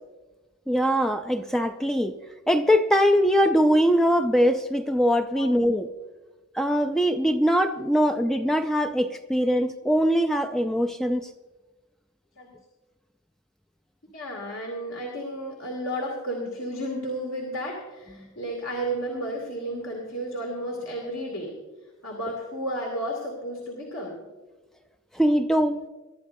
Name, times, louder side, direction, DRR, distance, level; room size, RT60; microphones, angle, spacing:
voice 1, 0.7-2.1 2.5-5.9 6.5-11.3 25.1-25.8, equal, ahead, 6 dB, 0.4 m, -22 dB
voice 2, 14.1-21.6 22.0-24.2, right 1 dB, 80° left, -1 dB, 2.6 m, -32 dB
24.0 x 13.0 x 2.6 m, 1.2 s
head